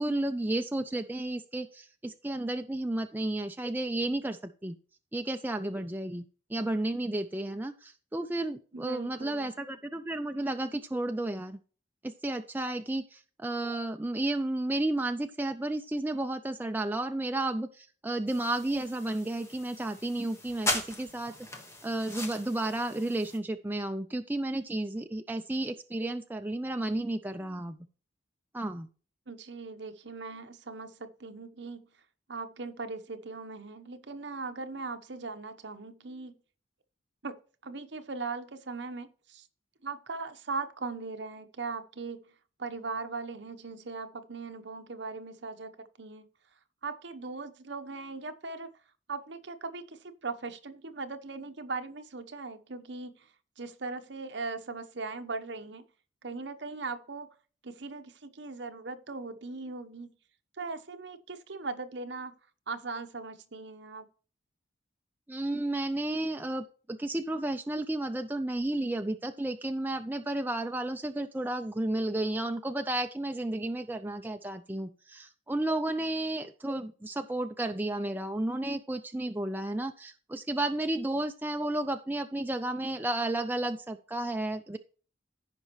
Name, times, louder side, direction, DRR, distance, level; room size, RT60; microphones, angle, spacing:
voice 1, 0.0-4.8 5.1-6.2 6.5-11.6 12.0-21.3 21.8-27.9 28.5-28.9 65.3-84.8, right 1 dB, 10° right, 6 dB, 0.4 m, -32 dB
voice 2, 8.7-9.5 29.3-31.9 32.3-36.3 37.2-37.3 37.6-39.5 39.8-42.3 42.6-46.3 46.8-48.7 49.1-53.3 53.6-55.9 56.2-57.3 57.6-60.1 60.6-62.3 62.7-64.1, right 4 dB, 65° right, 8 dB, 1.0 m, -39 dB
sound 1, 18.3-23.4, left 1 dB, 15° left, 1.4 m, -38 dB
15.0 x 5.3 x 3.1 m, 0.38 s
head